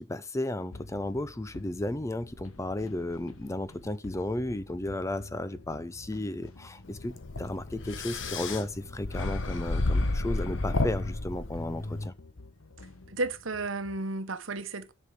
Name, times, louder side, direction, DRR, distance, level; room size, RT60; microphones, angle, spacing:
voice 1, 0.0-12.1, left 1 dB, 15° left, 0.5 m, -34 dB
sound 1, 0.7-14.0, left 2 dB, 85° left, 1.1 m, -48 dB
sound 2, 6.9-12.1, left 2 dB, 60° left, 1.1 m, -31 dB
voice 2, 13.1-14.9, right 2 dB, 65° right, 1.1 m, -33 dB
10.0 x 5.4 x 6.5 m
head